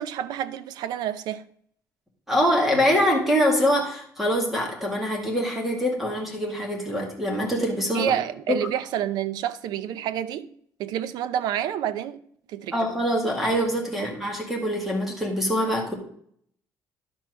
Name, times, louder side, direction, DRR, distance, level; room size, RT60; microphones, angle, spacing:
voice 1, 0.0-1.4 7.9-10.5 10.8-12.2 12.5-12.8 14.0-14.1, right 10 dB, 85° right, 0.6 m, -28 dB
voice 2, 2.3-8.2 8.5-8.6 12.7-15.9, equal, 5° right, 2.0 m, -24 dB
11.5 x 4.6 x 6.2 m
cardioid pair, 175°, 7 cm